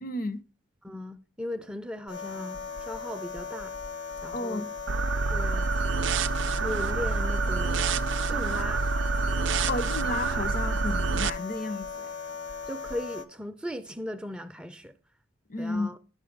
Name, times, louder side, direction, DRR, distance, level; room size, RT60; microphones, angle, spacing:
voice 1, 0.0-0.4 4.3-4.7 9.7-12.1 15.5-16.0, left 2 dB, 45° left, 0.6 m, -32 dB
voice 2, 0.8-3.7 4.2-4.7 5.3-5.7 6.4-8.0 8.3-8.8 12.7-14.9 15.6-16.0, left 1 dB, 5° right, 0.4 m, -37 dB
sound 1, 2.1-13.2, left 5 dB, 65° left, 0.9 m, -38 dB
sound 2, 4.9-11.3, right 4 dB, 65° right, 0.5 m, -27 dB
10.0 x 6.4 x 5.1 m
head